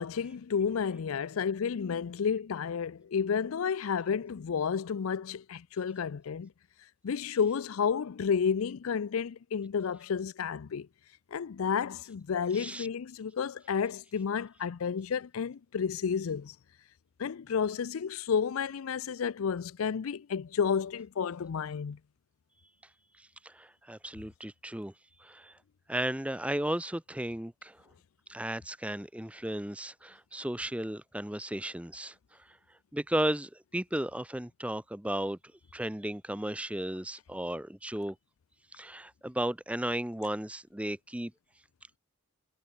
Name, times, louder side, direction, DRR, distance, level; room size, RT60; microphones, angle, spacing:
voice 1, 0.0-6.5 7.0-10.9 11.3-16.5 17.2-22.0, left 6 dB, 75° left, 0.5 m, -31 dB
voice 2, 12.5-12.9 23.2-24.9 25.2-25.6 25.9-27.8 28.3-32.1 32.9-35.4 35.7-38.2 38.7-41.3, right 1 dB, 5° right, 0.8 m, -34 dB
head